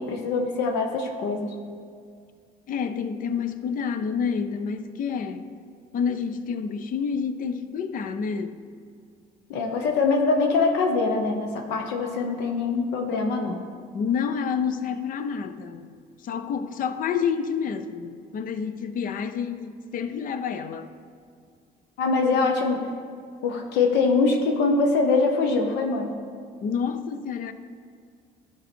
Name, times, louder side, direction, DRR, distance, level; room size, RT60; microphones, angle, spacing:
voice 1, 0.0-1.5 9.5-13.6 22.0-22.8 23.4-26.1, left 4 dB, 85° left, 3 dB, 0.9 m, -23 dB
voice 2, 2.7-5.5 5.9-8.6 13.9-15.9 16.2-20.9 26.6-27.5, left 6 dB, 55° left, 10 dB, 0.6 m, -28 dB
12.0 x 4.7 x 4.4 m, 2.2 s
cardioid pair, 110°, 17 cm